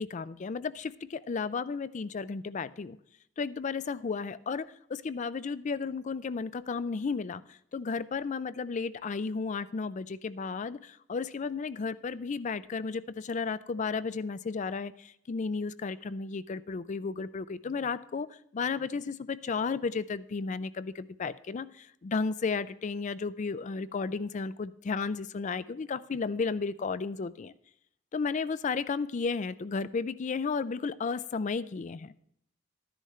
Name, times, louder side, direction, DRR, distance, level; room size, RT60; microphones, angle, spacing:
voice 1, 0.0-3.0 3.4-27.5 28.1-32.1, left 4 dB, 40° left, 16 dB, 0.4 m, -33 dB
13.0 x 10.0 x 3.2 m, 0.74 s
head